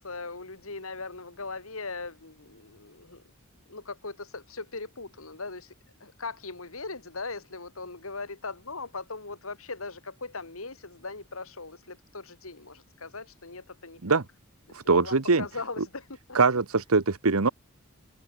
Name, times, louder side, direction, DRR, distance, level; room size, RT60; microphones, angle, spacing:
voice 1, 0.0-3.2 3.7-5.7 6.0-14.0 14.7-16.4, left 3 dB, 70° left, 2.8 m, -39 dB
voice 2, 14.7-15.4 16.3-17.5, right 4 dB, 80° right, 1.2 m, -22 dB
head